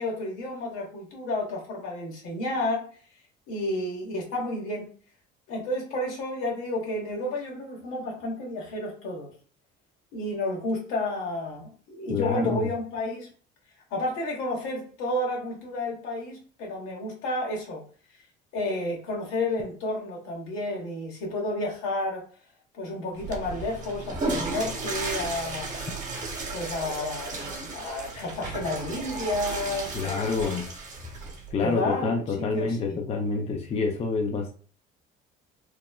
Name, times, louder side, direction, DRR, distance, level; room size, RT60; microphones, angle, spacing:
voice 1, 0.0-2.9 3.5-4.9 5.5-9.3 10.1-13.3 13.9-17.8 18.5-22.2 22.7-25.7 26.5-30.5 31.6-32.1 32.5-33.0, left 1 dB, 80° left, 0 dB, 1.1 m, -31 dB
voice 2, 12.1-12.7 29.9-30.7 31.5-34.5, left 4 dB, 30° left, 3 dB, 0.5 m, -27 dB
Water / Toilet flush, 23.2-31.5, right 3 dB, 35° right, 1.0 m, -34 dB
3.0 x 2.1 x 2.2 m, 0.42 s
cardioid pair, 110°, 21 cm